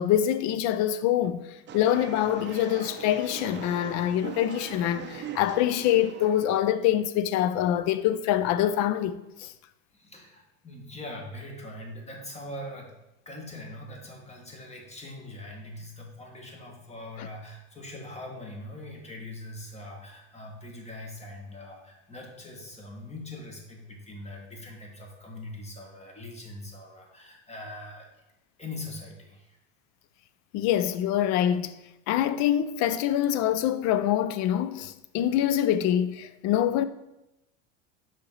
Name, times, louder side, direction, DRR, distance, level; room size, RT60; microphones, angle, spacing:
voice 1, 0.0-1.5 1.7-9.5 17.2-17.3 30.5-31.8 32.1-36.8, left 11 dB, 50° left, 0.5 m, -25 dB
sound 1, 1.7-6.6, right 8 dB, 30° right, 0.6 m, -41 dB
voice 2, 9.9-12.9 13.2-28.1 28.6-29.6, left 1 dB, 15° left, 1.5 m, -42 dB
5.6 x 4.4 x 4.0 m
hypercardioid pair, 95°, 38 cm